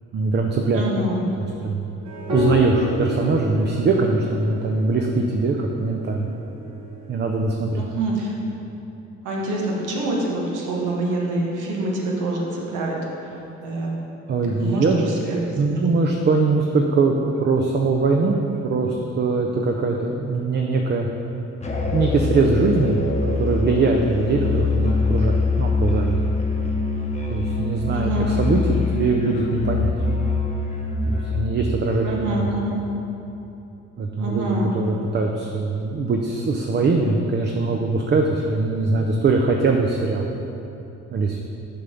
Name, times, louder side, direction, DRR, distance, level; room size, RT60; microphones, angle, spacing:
voice 1, 0.1-0.8 1.6-1.8 2.3-6.3 7.1-7.9 14.3-15.0 15.6-18.4 18.6-21.1 21.9-23.1 23.4-26.2 27.3-29.9 31.1-32.5 34.0-40.3 41.1-41.4, right 3 dB, 35° right, 2 dB, 0.5 m, -22 dB
voice 2, 0.7-1.2 7.8-8.3 9.2-13.3 13.6-14.0 14.6-15.4 15.7-15.8 27.9-28.3 32.0-32.8 34.2-34.7, right 2 dB, 85° right, -2 dB, 1.3 m, -26 dB
sound 1, 2.0-7.0, left 1 dB, 60° right, 1.5 m, -29 dB
Musical instrument, 21.6-31.5, left 4 dB, 20° left, 0.8 m, -24 dB
6.6 x 3.9 x 5.7 m, 3.0 s
cardioid pair, 90°, 30 cm